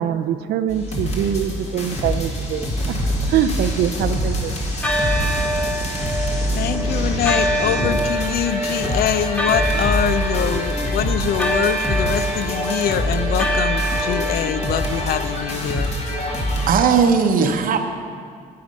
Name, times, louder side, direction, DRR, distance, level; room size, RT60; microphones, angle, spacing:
voice 1, 0.0-2.9 3.3-4.5, right 9 dB, 75° right, 12 dB, 0.6 m, -23 dB
sound 1, 0.7-16.7, equal, 40° left, 1.9 m, -25 dB
sound 2, 2.8-4.3 4.8-15.4, right 1 dB, 10° left, 0.9 m, -26 dB
voice 2, 6.6-15.9, left 9 dB, 60° left, 12 dB, 0.5 m, -24 dB
voice 3, 16.7-17.8, right 6 dB, 55° right, 5 dB, 0.9 m, -17 dB
9.3 x 8.7 x 5.3 m, 2.2 s
cardioid pair, 110°, 17 cm